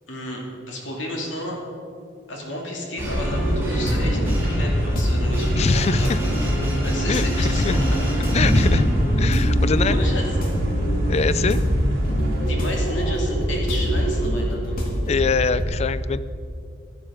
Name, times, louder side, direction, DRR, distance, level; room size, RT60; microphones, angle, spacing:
voice 1, 0.1-1.6 2.3-6.4 6.6-8.4 9.8-10.2 12.4-15.0, left 1 dB, 90° left, 0 dB, 2.5 m, -32 dB
sound 1, 3.0-15.7, equal, 50° left, 2.0 m, -23 dB
sound 2, 3.0-9.3, equal, 10° right, 2.5 m, -29 dB
sound 3, 3.0-12.5, equal, 55° right, 2.1 m, -28 dB
voice 2, 5.5-6.2 7.1-7.8 8.3-8.9 9.2-10.0 11.1-11.6 15.1-16.2, left 4 dB, 35° left, 15 dB, 0.4 m, -23 dB
11.5 x 11.0 x 5.0 m, 2.4 s
head